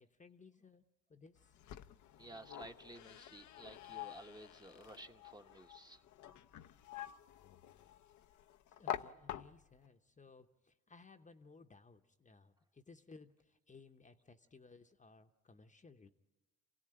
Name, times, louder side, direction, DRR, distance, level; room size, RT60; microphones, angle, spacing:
voice 1, 0.0-1.6 8.8-16.1, left 4 dB, 25° left, 6 dB, 0.9 m, -60 dB
sound 1, 1.4-9.9, left 11 dB, 75° left, 0.7 m, -48 dB
voice 2, 2.2-6.0, right 1 dB, 15° right, 5 dB, 1.0 m, -54 dB
27.5 x 17.0 x 9.0 m, 1.2 s
cardioid pair, 90°, 30 cm